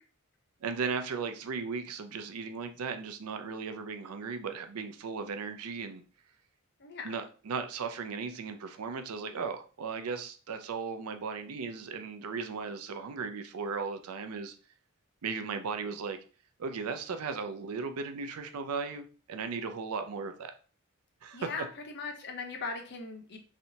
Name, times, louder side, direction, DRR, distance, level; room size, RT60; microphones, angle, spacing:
voice 1, 0.6-6.0 7.0-14.5 15.2-16.2 16.6-20.5 21.2-21.5, right 5 dB, 85° right, 8 dB, 0.5 m, -36 dB
voice 2, 6.8-7.1 21.3-23.4, left 4 dB, 50° left, 4 dB, 0.7 m, -39 dB
3.2 x 2.7 x 2.8 m, 0.38 s
head